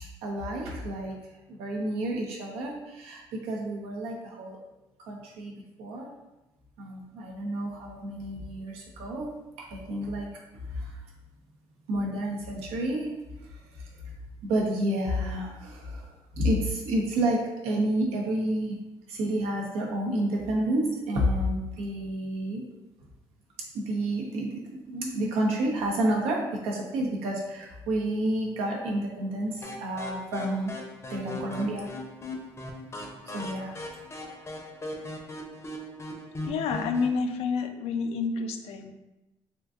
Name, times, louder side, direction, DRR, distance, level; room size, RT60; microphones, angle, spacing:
voice 1, 0.2-1.1 1.6-4.6 5.1-5.5 5.8-6.1 6.8-9.3 9.7-10.3 10.7-10.9 11.9-13.1 14.4-16.0 16.3-17.4 17.6-18.8 19.1-22.6 23.7-30.7 31.1-31.9 33.3-33.7, right 1 dB, 90° right, -1 dB, 0.7 m, -29 dB
sound 1, 29.6-37.2, left 1 dB, 25° left, 0.6 m, -39 dB
voice 2, 36.4-38.9, left 5 dB, 75° left, 6 dB, 0.4 m, -29 dB
3.6 x 2.6 x 2.4 m, 0.99 s
cardioid pair, 80°, 10 cm